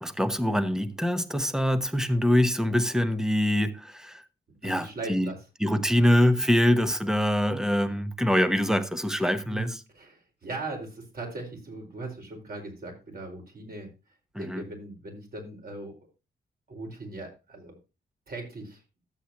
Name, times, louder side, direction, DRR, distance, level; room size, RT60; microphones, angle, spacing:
voice 1, 0.0-4.2 4.6-5.3 5.6-9.8 14.3-14.6, equal, 5° right, 1.0 m, -24 dB
voice 2, 4.6-5.4 7.6-7.8 9.5-13.9 14.4-15.9 16.7-17.8 18.3-18.8, right 2 dB, 50° right, 4.9 m, -39 dB
13.0 x 8.1 x 2.9 m
cardioid pair, 100°, 19 cm